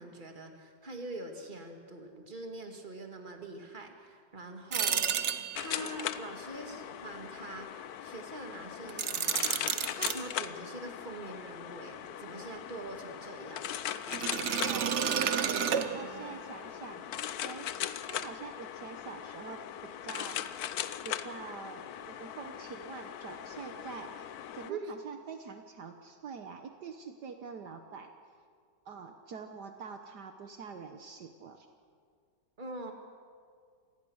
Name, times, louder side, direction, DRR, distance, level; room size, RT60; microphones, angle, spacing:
voice 1, 0.0-5.2 5.5-7.8 8.0-13.8 24.7-24.9 32.6-32.9, right 2 dB, 25° right, 3 dB, 2.2 m, -44 dB
sound 1, 4.7-5.9 8.9-10.2 14.1-16.4, right 7 dB, 50° right, 1.0 m, -31 dB
sound 2, 5.5-24.7, left 10 dB, 65° left, 1.1 m, -40 dB
voice 2, 14.6-15.3 15.8-17.1 17.4-17.7 18.1-20.7 21.0-28.1 28.8-31.7, right 5 dB, 65° right, 6 dB, 1.6 m, -45 dB
27.0 x 19.0 x 6.4 m, 2.1 s
omnidirectional pair, 2.0 m